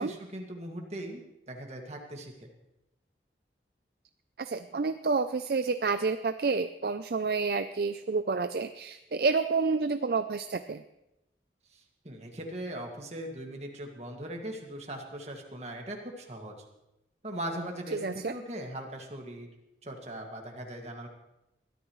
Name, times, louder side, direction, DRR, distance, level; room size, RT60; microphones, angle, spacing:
voice 1, 0.0-2.3 11.7-16.6 17.2-19.5 19.8-21.1, right 1 dB, 40° right, 2 dB, 2.0 m, -39 dB
voice 2, 4.4-10.8 18.0-18.3, right 4 dB, 55° right, 10 dB, 0.4 m, -29 dB
21.5 x 13.5 x 3.1 m, 0.91 s
head